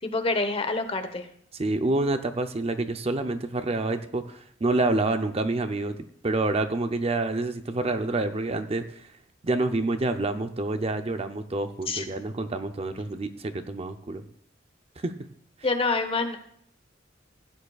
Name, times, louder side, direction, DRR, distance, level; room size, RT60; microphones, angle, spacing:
voice 1, 0.0-1.3 11.9-12.1 15.6-16.4, left 3 dB, 30° left, 7 dB, 1.0 m, -27 dB
voice 2, 1.6-6.0 6.2-9.0 9.4-14.2 15.0-15.1, right 2 dB, 35° right, 9 dB, 0.6 m, -27 dB
16.0 x 9.3 x 2.4 m, 0.65 s
head